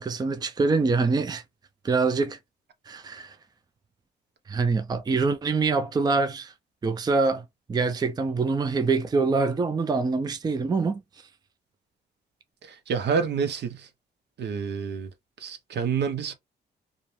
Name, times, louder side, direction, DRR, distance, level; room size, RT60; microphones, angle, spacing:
voice 1, 0.0-1.4 1.8-2.4 2.9-3.4 4.5-6.5 6.8-11.0, right 4 dB, 20° right, 0.4 m, -25 dB
voice 2, 12.6-13.9 14.4-15.1 15.4-16.3, right 6 dB, 70° right, 0.7 m, -28 dB
2.5 x 2.1 x 3.1 m
cardioid pair, 75°, 19 cm